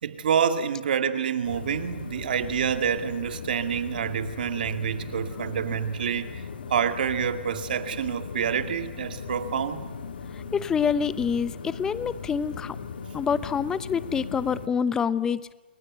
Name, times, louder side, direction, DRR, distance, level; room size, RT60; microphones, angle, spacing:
voice 1, 0.0-6.4 6.7-9.9, right 8 dB, 55° right, 2.2 m, -27 dB
sound 1, 1.4-14.7, left 6 dB, 65° left, 3.1 m, -38 dB
voice 2, 10.3-12.8 13.1-15.5, left 6 dB, 10° left, 0.8 m, -26 dB
28.5 x 22.0 x 8.2 m
hypercardioid pair, 145°, 6 cm